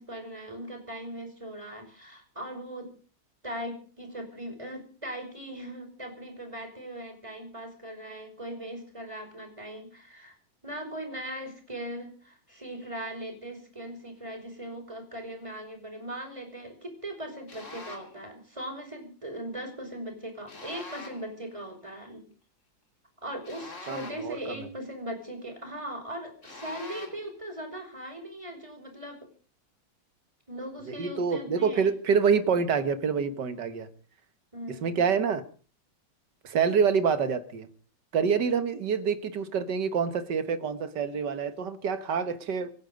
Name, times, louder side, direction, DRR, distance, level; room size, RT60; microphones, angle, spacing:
voice 1, 0.0-2.9 3.4-10.3 10.6-22.2 23.2-29.3 30.5-31.9 34.5-35.1, right 1 dB, 15° right, 5.3 m, -39 dB
sound 1, 17.5-18.2 20.5-21.3 23.4-24.4 26.4-27.3, left 3 dB, 35° left, 3.2 m, -44 dB
voice 2, 23.9-24.4 30.9-33.9 34.8-35.4 36.4-37.7 38.1-42.7, right 6 dB, 60° right, 1.9 m, -26 dB
26.5 x 10.5 x 5.3 m
omnidirectional pair, 2.2 m